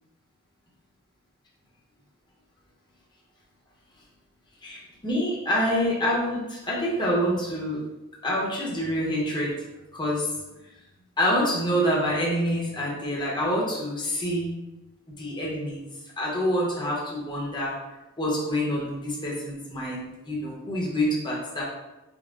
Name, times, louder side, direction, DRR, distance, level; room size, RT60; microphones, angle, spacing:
voice 1, 4.6-7.8 8.2-9.5 9.9-10.3 11.2-14.5 15.2-15.8 16.2-17.7 18.2-21.6, equal, 20° left, -4 dB, 0.8 m, -26 dB
5.3 x 2.1 x 2.4 m, 1.0 s
head